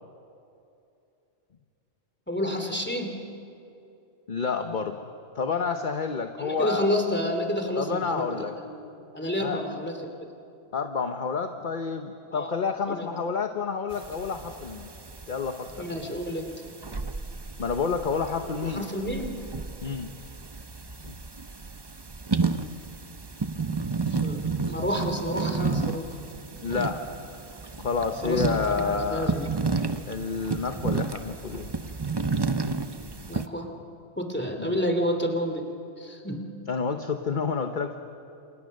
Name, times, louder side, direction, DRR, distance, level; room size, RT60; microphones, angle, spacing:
voice 1, 2.3-3.2 6.4-8.3 8.6-8.8 9.1-10.1 12.3-12.5 12.9-13.1 15.8-16.5 18.6-19.4 24.1-26.1 28.2-29.5 33.3-33.7 34.2-35.7 36.0-36.4, left 1 dB, 10° left, 4 dB, 2.7 m, -29 dB
voice 2, 4.3-5.0 5.3-6.9 7.7-8.6 9.4-9.6 10.7-14.9 15.3-15.9 17.6-18.9 19.8-20.1 21.0-21.2 26.6-27.0 27.8-29.4 30.1-31.7 34.6-34.8 36.7-38.0, left 5 dB, 40° left, 6 dB, 1.1 m, -29 dB
sound 1, 13.9-33.5, right 4 dB, 25° right, 0.6 m, -32 dB
30.0 x 27.5 x 6.6 m, 2.7 s
omnidirectional pair, 1.3 m